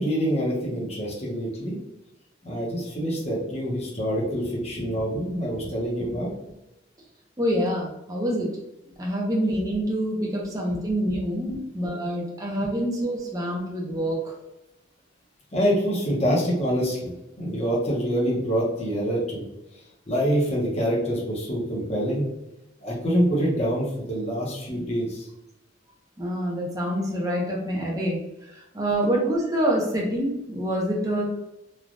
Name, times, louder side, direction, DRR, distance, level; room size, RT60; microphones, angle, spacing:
voice 1, 0.0-1.8 2.4-6.3 10.7-10.8 11.5-11.6 12.6-12.7 15.5-17.1 17.4-19.5 20.1-22.2 22.8-25.3, equal, 30° left, -5 dB, 0.8 m, -26 dB
voice 2, 7.4-8.5 9.0-14.3 26.2-28.2 28.5-31.2, right 1 dB, 20° right, -3 dB, 0.5 m, -26 dB
3.2 x 2.2 x 2.5 m, 0.91 s
head